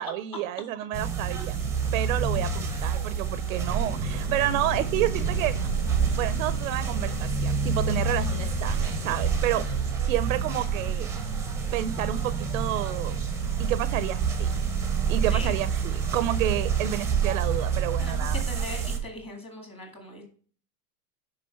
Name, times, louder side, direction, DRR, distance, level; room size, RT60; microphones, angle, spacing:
voice 1, 0.0-1.6 1.9-5.5 6.2-9.6 10.0-11.1 11.7-13.2 13.6-14.7 15.1-18.4, right 13 dB, 65° right, 15 dB, 0.6 m, -30 dB
sound 1, 0.9-19.0, right 6 dB, 5° right, 0.9 m, -28 dB
sound 2, 3.8-14.1, left 6 dB, 85° left, 1.6 m, -44 dB
voice 2, 18.0-20.2, left 2 dB, 15° left, 2 dB, 1.9 m, -40 dB
6.3 x 5.1 x 5.7 m, 0.43 s
supercardioid pair, 165°, 43 cm